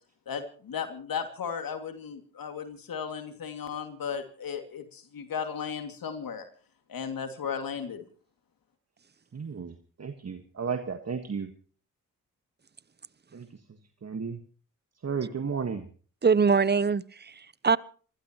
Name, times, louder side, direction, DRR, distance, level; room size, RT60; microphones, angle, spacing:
voice 1, 0.3-6.5 6.9-8.0, left 7 dB, 65° left, 6 dB, 2.5 m, -35 dB
voice 2, 9.3-11.5 13.3-13.5 14.0-14.4 15.0-15.9, right 6 dB, 45° right, 7 dB, 1.7 m, -33 dB
voice 3, 16.2-17.8, right 5 dB, 25° right, 20 dB, 0.8 m, -23 dB
26.5 x 15.5 x 3.1 m, 0.42 s
hypercardioid pair, 40°, 37 cm